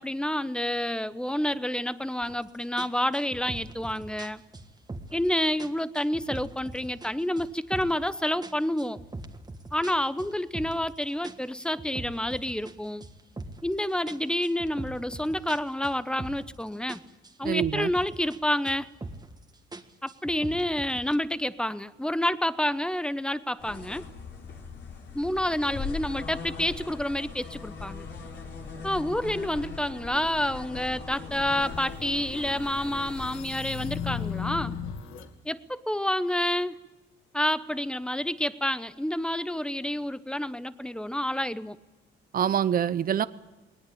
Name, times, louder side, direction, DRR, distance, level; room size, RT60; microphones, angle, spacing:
voice 1, 0.0-4.4 5.1-9.0 9.7-13.0 13.6-17.0 17.4-18.9 20.0-24.0 25.1-28.1 28.8-34.8 35.4-36.8 37.3-41.8, left 1 dB, 5° left, 15 dB, 0.9 m, -29 dB
sound 1, 2.2-2.4 2.8-5.3 5.6-7.1 7.4-8.1 8.4-10.9 11.2-13.7 14.1-16.6 16.9-18.4 18.7-19.4 19.7-21.2, right 2 dB, 20° right, 1.7 m, -42 dB
voice 2, 17.4-17.9 42.3-43.3, right 9 dB, 45° right, 15 dB, 0.7 m, -25 dB
sound 2, 23.6-33.4, left 5 dB, 65° left, 4.6 m, -40 dB
sound 3, 31.5-35.3, left 7 dB, 85° left, 1.8 m, -36 dB
20.0 x 19.0 x 8.6 m, 1.2 s
cardioid pair, 90°, 20 cm